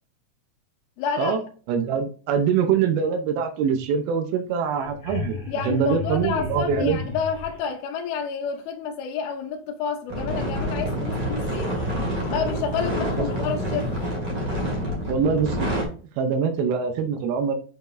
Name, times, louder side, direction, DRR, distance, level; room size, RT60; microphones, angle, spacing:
voice 1, 1.0-1.4 5.5-11.8 12.3-14.0, left 6 dB, 80° left, 2.7 m, -29 dB
voice 2, 1.7-5.4 5.6-7.0 13.2-13.3 15.1-15.7 16.2-17.6, right 6 dB, 80° right, 2.6 m, -23 dB
sound 1, 4.3-4.4 4.6-7.7 10.2-10.3 11.0-14.1 16.6-16.7, left 4 dB, 30° left, 2.5 m, -36 dB
sound 2, 10.1-15.8, equal, 30° right, 2.0 m, -27 dB
7.8 x 5.1 x 2.6 m
omnidirectional pair, 4.4 m